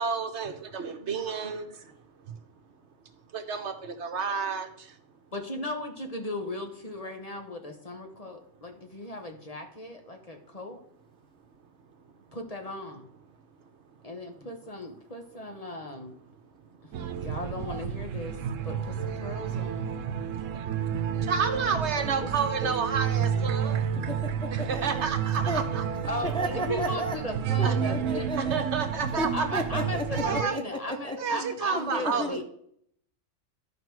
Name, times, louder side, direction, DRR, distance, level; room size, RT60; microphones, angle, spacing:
voice 1, 0.0-1.9 2.3-2.4 3.3-5.0 21.2-23.8 24.5-25.8 26.7-26.8 27.6-28.0 28.4-29.6 30.1-30.5 31.2-32.4, right 5 dB, 65° right, 8 dB, 1.2 m, -30 dB
voice 2, 5.3-10.8 12.3-13.1 14.0-16.1 17.2-18.4 18.6-20.0 22.2-22.3 22.6-22.7 26.0-28.6 29.1-32.4, left 2 dB, 30° left, 4 dB, 1.1 m, -37 dB
sound 1, 16.9-30.4, right 8 dB, 85° right, 1.0 m, -30 dB
voice 3, 24.0-25.1 25.5-25.7 26.2-27.2 27.6-28.6 29.2-32.3, equal, 10° left, 3 dB, 0.3 m, -34 dB
12.5 x 5.0 x 4.6 m, 0.66 s
omnidirectional pair, 1.3 m